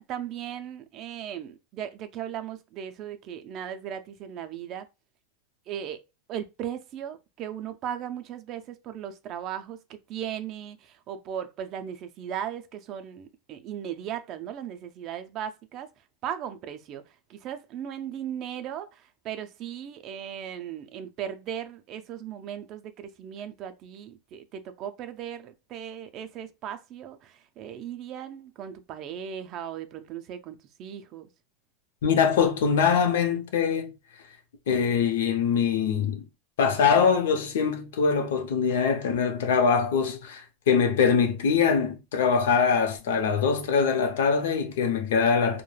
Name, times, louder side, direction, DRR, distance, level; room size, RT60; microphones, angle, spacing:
voice 1, 0.0-4.9 5.7-6.0 6.3-15.9 16.2-17.0 17.3-31.3, right 9 dB, 35° right, 0.4 m, -37 dB
voice 2, 32.0-33.9 34.7-36.2 36.6-45.6, left 6 dB, 85° left, 0.6 m, -23 dB
2.3 x 2.1 x 3.1 m
supercardioid pair, 165°, 0 cm